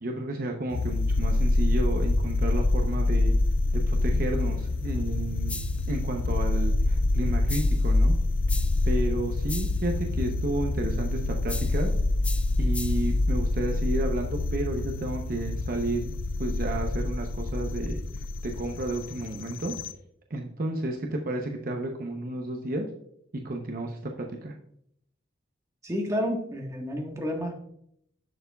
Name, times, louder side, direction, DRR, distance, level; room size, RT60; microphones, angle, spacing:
voice 1, 0.0-3.4 3.9-5.5 5.9-8.2 8.5-8.6 8.8-11.9 12.6-16.1 16.4-18.0 18.4-19.7 20.3-22.9 23.4-24.0 24.3-24.5, right 1 dB, 50° right, 2 dB, 0.8 m, -32 dB
sound 1, 0.7-19.9, left 2 dB, 90° left, 0.5 m, -26 dB
sound 2, 5.5-5.9 7.5-7.9 8.5-8.9 9.5-9.9 11.5-11.9 12.2-13.1, left 3 dB, 5° left, 0.3 m, -39 dB
voice 2, 25.8-27.5, equal, 15° right, 0 dB, 1.4 m, -30 dB
10.5 x 6.8 x 2.3 m, 0.71 s
head